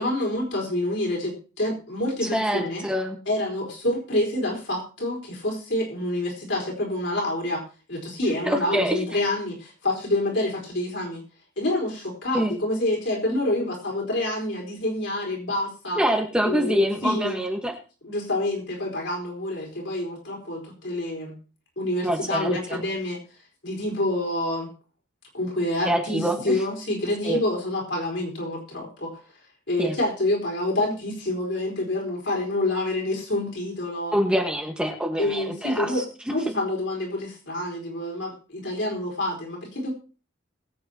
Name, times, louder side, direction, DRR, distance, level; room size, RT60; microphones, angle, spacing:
voice 1, 0.0-2.8 3.3-7.6 7.9-11.2 11.6-16.0 16.4-17.4 18.0-21.4 21.8-23.2 23.6-24.7 25.3-29.2 29.7-34.1 35.2-36.0 36.3-39.9, left 1 dB, 65° left, -1 dB, 4.7 m, -27 dB
voice 2, 2.3-3.2 8.4-9.0 12.3-12.5 16.0-17.7 22.0-22.8 25.8-26.6 27.2-27.4 29.8-30.0 34.1-36.0, equal, 5° right, 2 dB, 1.4 m, -25 dB
21.0 x 8.6 x 2.9 m, 0.36 s
head